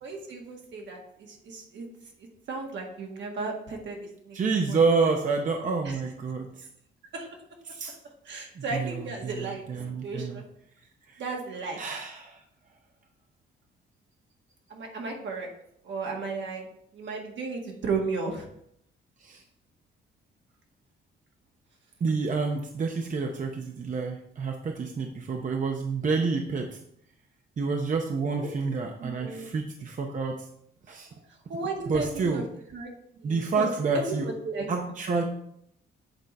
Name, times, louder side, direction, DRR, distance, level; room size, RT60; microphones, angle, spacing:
voice 1, 0.0-1.9 2.5-4.4 4.7-5.1 5.8-6.0 7.1-7.3 8.2-10.4 11.2-11.8 14.7-15.5 15.8-18.5 28.3-28.5 29.0-29.5 31.5-32.5 32.7-32.9 33.2-34.7, right 3 dB, 65° right, 1 dB, 1.7 m, -35 dB
voice 2, 4.3-6.6 7.7-7.9 8.5-10.4 11.1-11.2 11.8-12.4 19.2-19.4 22.0-26.8 27.6-30.5 30.9-31.1 31.9-32.4 33.2-34.3 34.7-35.2, right 4 dB, 40° right, 2 dB, 0.8 m, -28 dB
8.0 x 3.9 x 4.2 m, 0.72 s
cardioid pair, 90°, 20 cm